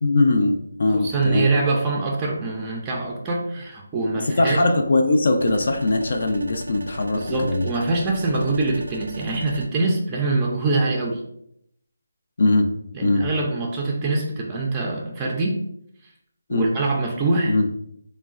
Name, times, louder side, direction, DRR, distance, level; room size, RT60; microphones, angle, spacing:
voice 1, 0.0-1.5 4.2-7.7 8.3-8.4 12.4-12.7 13.0-13.3 16.5-16.7 17.5-17.7, left 2 dB, 55° left, 4 dB, 0.4 m, -21 dB
voice 2, 0.9-4.6 7.1-11.2 12.9-15.6 16.5-17.6, right 3 dB, 15° right, -1 dB, 0.4 m, -24 dB
sound 1, 5.4-9.7, right 1 dB, 80° right, 0.4 m, -38 dB
3.7 x 2.1 x 2.4 m, 0.73 s
figure-of-eight pair, 160°, 0 cm